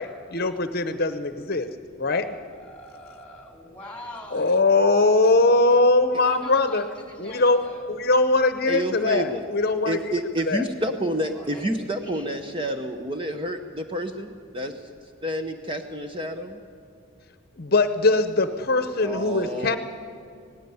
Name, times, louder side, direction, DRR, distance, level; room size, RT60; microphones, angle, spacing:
voice 1, 0.0-1.7 2.0-2.3 4.3-6.8 7.2-7.6 7.9-10.0 10.5-10.6 17.6-19.8, left 2 dB, 45° left, 10 dB, 0.8 m, -21 dB
voice 2, 2.5-4.6 6.2-7.8 11.3-11.6 12.1-12.3, left 1 dB, 5° left, 3 dB, 2.8 m, -43 dB
voice 3, 8.7-9.4 9.8-14.9 15.2-16.6 19.0-19.8, right 1 dB, 25° right, 5 dB, 0.8 m, -29 dB
18.0 x 16.0 x 9.5 m, 2.5 s
head